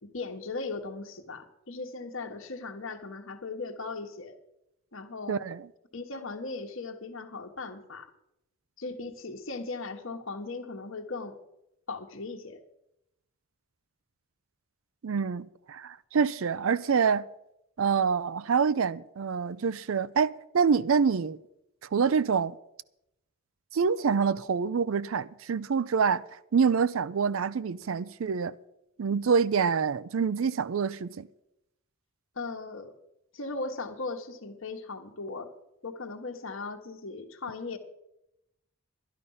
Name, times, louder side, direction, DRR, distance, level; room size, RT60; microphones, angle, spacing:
voice 1, 0.0-4.3 4.9-5.4 5.9-8.1 8.8-11.4 11.9-12.6 32.3-32.9 33.3-35.5 35.8-37.8, left 3 dB, 60° left, 1.2 m, -38 dB
voice 2, 5.3-5.6 15.0-17.3 17.8-21.4 21.9-22.5 23.7-26.2 26.5-28.5 29.0-31.3, right 6 dB, 65° right, 0.4 m, -26 dB
12.0 x 11.5 x 5.5 m
head